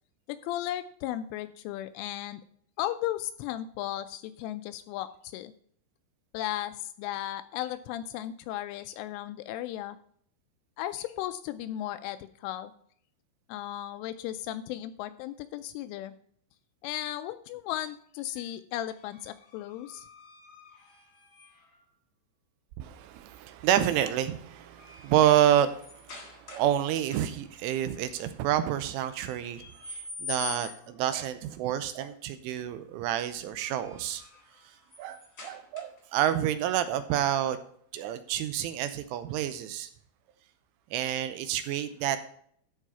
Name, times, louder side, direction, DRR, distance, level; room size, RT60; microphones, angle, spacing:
voice 1, 0.3-2.4 2.8-5.5 6.3-10.0 10.8-12.7 13.5-16.1 16.8-20.1, left 13 dB, 85° left, 11 dB, 2.9 m, -35 dB
sound 1, 18.9-21.8 23.6-23.9 24.3-26.8 27.1-27.6 29.1-31.0 33.3-36.2, left 6 dB, 35° left, 1.5 m, -45 dB
voice 2, 22.8-34.2 35.0-37.6 37.9-39.9 40.9-42.2, right 11 dB, 85° right, 11 dB, 3.0 m, -28 dB
13.0 x 4.8 x 5.5 m, 0.62 s
omnidirectional pair, 5.9 m